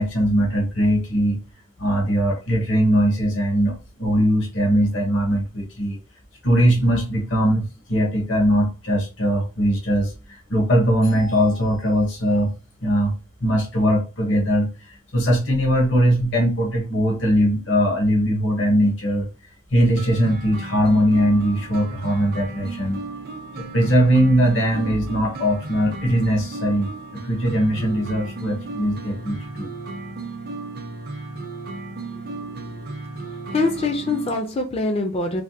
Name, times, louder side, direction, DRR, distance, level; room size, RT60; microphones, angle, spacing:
voice 1, 0.0-1.4 1.8-6.0 6.4-12.5 12.8-13.1 13.4-14.7 15.1-19.3 19.7-23.0 23.6-26.9 27.2-29.7, equal, 70° left, 1.0 m, -20 dB
sound 1, 20.0-34.4, right 3 dB, 50° right, 0.6 m, -35 dB
voice 2, 33.5-35.4, left 2 dB, 30° left, 0.4 m, -24 dB
3.3 x 2.1 x 2.7 m
head